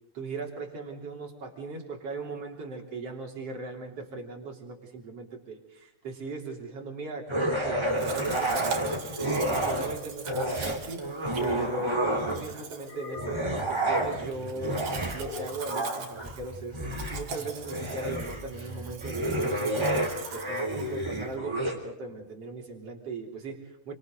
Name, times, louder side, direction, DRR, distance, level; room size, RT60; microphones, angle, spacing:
voice 1, 0.1-11.1 11.4-23.9, right 3 dB, 50° right, 1 dB, 4.3 m, -38 dB
sound 1, 7.3-10.0 10.2-12.6 13.1-21.8, right 1 dB, 10° right, 3.0 m, -30 dB
Domestic sounds home sounds, 8.0-21.4, right 6 dB, 70° right, 3.7 m, -42 dB
sound 2, 11.7-12.1 12.8-13.7 15.2-15.7, left 4 dB, 65° left, 5.4 m, -42 dB
28.0 x 25.5 x 3.9 m, 0.87 s
omnidirectional pair, 3.6 m